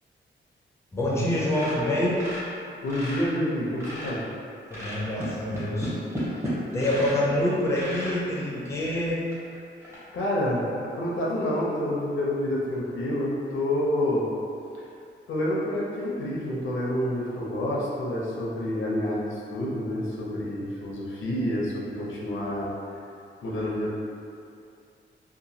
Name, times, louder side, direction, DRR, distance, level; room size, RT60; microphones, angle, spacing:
voice 1, 0.9-2.2 4.7-5.9 6.7-9.2, left 1 dB, 15° left, -5 dB, 0.5 m, -26 dB
sound 1, 1.5-3.3 3.6-4.3 4.7-7.2 7.7-8.2 8.8-8.9 9.3-9.4 9.8-10.0, equal, 15° right, 0.7 m, -34 dB
voice 2, 2.8-4.2 9.8-14.3 15.3-22.7 23.4-24.0, left 1 dB, 85° left, -5 dB, 0.6 m, -28 dB
2.9 x 2.2 x 2.7 m, 2.5 s
wide cardioid pair, 140°, 20 cm